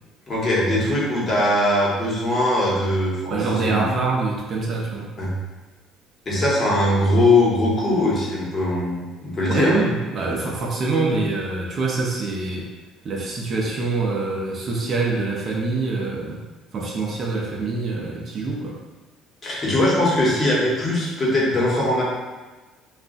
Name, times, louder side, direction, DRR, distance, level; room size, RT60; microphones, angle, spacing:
voice 1, 0.3-3.9 5.2-5.3 6.2-9.7 19.4-22.0, left 1 dB, 35° left, -6 dB, 1.1 m, -21 dB
voice 2, 3.3-5.1 9.5-12.7 13.0-16.4 16.7-18.8, right 3 dB, 45° right, -2 dB, 0.6 m, -25 dB
2.4 x 2.2 x 3.8 m, 1.2 s
cardioid pair, 105°, 0 cm